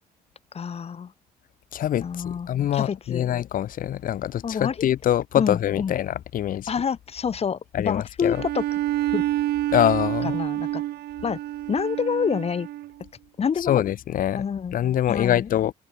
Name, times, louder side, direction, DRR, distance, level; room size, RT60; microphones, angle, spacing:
voice 1, 0.5-1.1 2.0-3.3 4.4-4.7 5.4-5.9 6.7-8.6 9.1-9.2 10.2-10.8 11.2-11.4 11.7-12.7 13.4-13.8 14.3-14.8 15.1-15.5, left 7 dB, 35° left, 2.9 m, -27 dB
voice 2, 1.7-6.7 7.7-8.4 9.7-10.4 13.7-14.4 14.7-15.7, left 11 dB, 55° left, 1.2 m, -24 dB
Bowed string instrument, 8.3-13.0, right 14 dB, 70° right, 3.6 m, -28 dB
cardioid pair, 110°, 17 cm